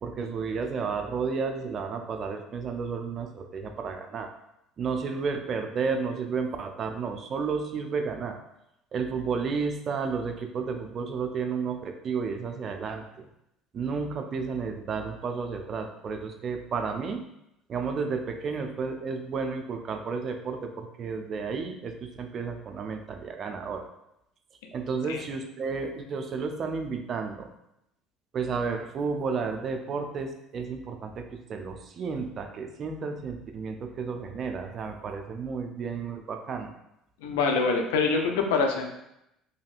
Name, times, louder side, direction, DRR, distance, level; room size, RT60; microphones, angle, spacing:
voice 1, 0.0-4.3 4.8-8.4 8.9-13.3 13.7-17.2 17.7-23.9 24.7-27.5 28.3-36.7, right 5 dB, 45° right, 5 dB, 0.4 m, -32 dB
voice 2, 37.2-38.9, left 4 dB, 80° left, 3 dB, 0.4 m, -25 dB
3.0 x 2.7 x 2.4 m, 0.82 s
hypercardioid pair, 75°, 0 cm